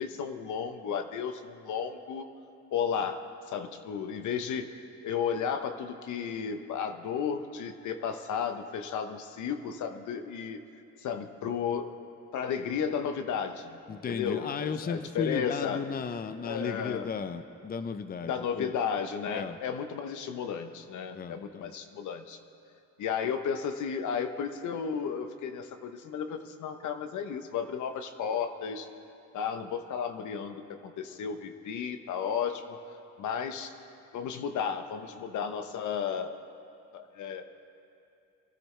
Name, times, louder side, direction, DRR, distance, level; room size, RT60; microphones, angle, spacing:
voice 1, 0.0-2.3 2.7-3.2 3.5-4.7 5.0-10.6 11.0-11.9 12.3-13.8 14.1-15.8 16.4-17.1 18.2-22.4 23.0-28.9 29.3-32.8 33.2-33.7 34.1-36.4 36.9-37.4, left 7 dB, 75° left, 8 dB, 0.9 m, -33 dB
voice 2, 13.9-18.7 19.3-19.6 21.1-21.7, left 6 dB, 30° left, 10 dB, 0.6 m, -35 dB
23.0 x 13.5 x 3.3 m, 2.6 s
cardioid pair, 90°, 30 cm